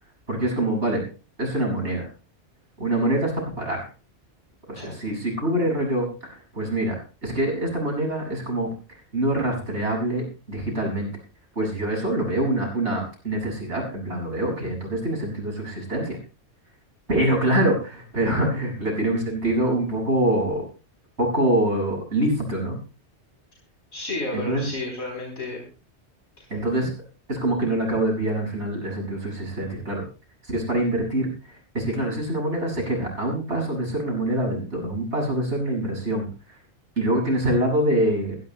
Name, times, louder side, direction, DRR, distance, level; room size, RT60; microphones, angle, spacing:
voice 1, 0.3-1.1 1.4-2.1 2.8-3.9 4.7-8.7 9.1-11.1 11.6-16.2 17.1-20.6 21.2-22.8 24.3-24.6 26.5-26.9 27.3-30.0 30.5-36.3 37.0-38.3, right 1 dB, 85° right, -1 dB, 7.0 m, -25 dB
voice 2, 23.9-25.6 26.4-26.5, left 2 dB, 75° left, 0 dB, 4.2 m, -32 dB
23.0 x 15.5 x 2.2 m, 0.34 s
omnidirectional pair, 1.1 m